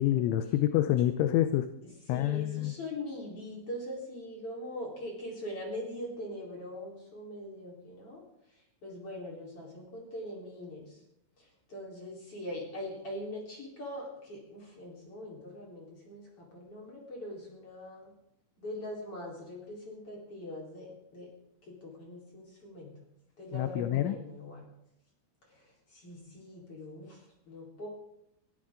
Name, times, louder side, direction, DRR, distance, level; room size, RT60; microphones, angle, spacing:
voice 1, 0.0-1.7 2.1-2.7 23.5-24.2, left 12 dB, 80° left, 9 dB, 3.1 m, -27 dB
voice 2, 1.8-8.2 8.8-11.0 11.4-18.1 18.6-21.3 21.6-23.0 23.4-24.6 25.5-27.9, left 1 dB, 30° left, -3 dB, 4.6 m, -42 dB
22.5 x 14.0 x 3.8 m, 0.81 s
omnidirectional pair, 5.6 m